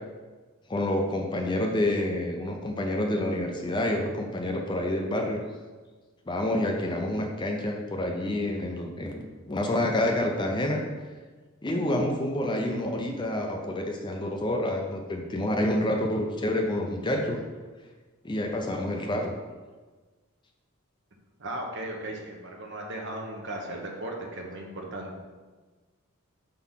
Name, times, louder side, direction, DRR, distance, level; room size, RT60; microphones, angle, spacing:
voice 1, 0.7-5.4 6.3-10.9 11.6-17.4 18.2-19.3, left 1 dB, 20° left, 2 dB, 0.5 m, -28 dB
voice 2, 21.4-25.1, right 1 dB, 55° right, 1 dB, 0.9 m, -36 dB
4.6 x 3.8 x 5.7 m, 1.4 s
head